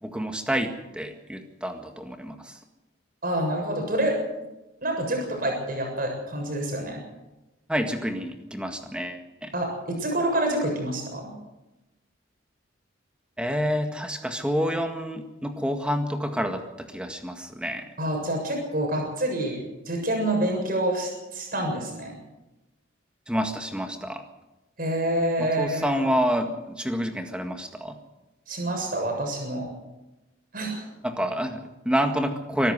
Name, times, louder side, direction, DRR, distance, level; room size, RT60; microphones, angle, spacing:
voice 1, 0.0-2.6 7.7-9.5 13.4-17.9 23.3-24.2 25.4-28.0 31.0-32.7, equal, 5° right, 6 dB, 1.8 m, -28 dB
voice 2, 3.2-4.2 4.8-7.0 9.5-11.3 18.0-22.2 24.8-25.9 28.5-29.7 30.5-30.8, right 1 dB, 45° right, 2 dB, 7.1 m, -27 dB
24.5 x 13.0 x 8.1 m, 1.0 s
head